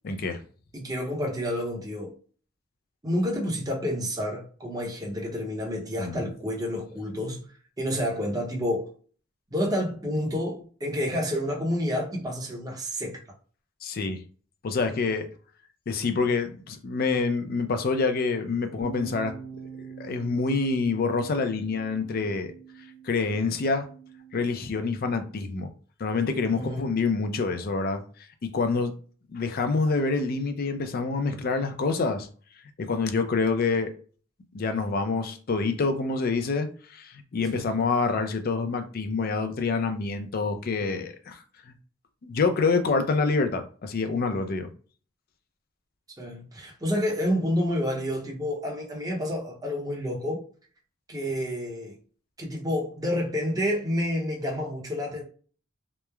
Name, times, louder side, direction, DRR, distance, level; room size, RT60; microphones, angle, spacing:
voice 1, 0.0-0.4 6.0-6.2 13.8-14.2 14.6-15.3 15.9-19.3 20.0-22.5 23.0-23.9 24.3-25.7 26.0-28.0 28.4-29.0 29.3-32.3 32.8-33.9 34.5-41.7 42.2-44.7, left 4 dB, 45° left, 0.4 m, -27 dB
voice 2, 0.7-2.2 3.0-7.5 7.8-8.9 9.5-13.2 26.5-26.9 37.5-37.7 46.2-50.5 51.1-52.0 52.4-55.2, equal, 15° right, 0.7 m, -29 dB
sound 1, 18.8-25.1, right 6 dB, 70° right, 0.8 m, -45 dB
3.0 x 2.0 x 2.3 m
head